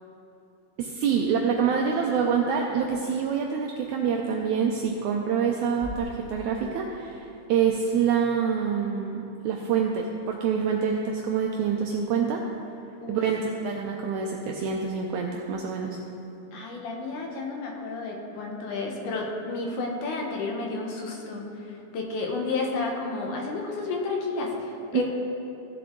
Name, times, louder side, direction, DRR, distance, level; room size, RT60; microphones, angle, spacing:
voice 1, 0.8-12.4 13.1-16.0 24.9-25.0, right 6 dB, 85° right, 1 dB, 1.7 m, -26 dB
sound 1, 5.8-7.6, left 1 dB, 50° left, 0.7 m, -42 dB
voice 2, 13.0-13.5 16.5-25.0, left 3 dB, 70° left, 0 dB, 2.4 m, -31 dB
15.0 x 6.9 x 3.7 m, 2.9 s
omnidirectional pair, 4.0 m